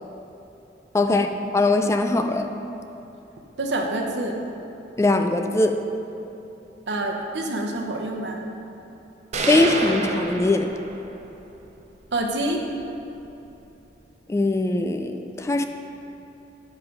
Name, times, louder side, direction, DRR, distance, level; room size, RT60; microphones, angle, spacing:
voice 1, 0.9-2.5 5.0-5.8 9.5-10.8 14.3-15.7, left 2 dB, 15° left, 6 dB, 0.3 m, -21 dB
voice 2, 3.6-4.4 6.9-8.4 12.1-12.6, right 1 dB, 80° right, 2 dB, 0.9 m, -27 dB
sound 1, 9.3-11.3, right 3 dB, 40° right, 0.6 m, -28 dB
8.7 x 4.9 x 5.3 m, 2.9 s
head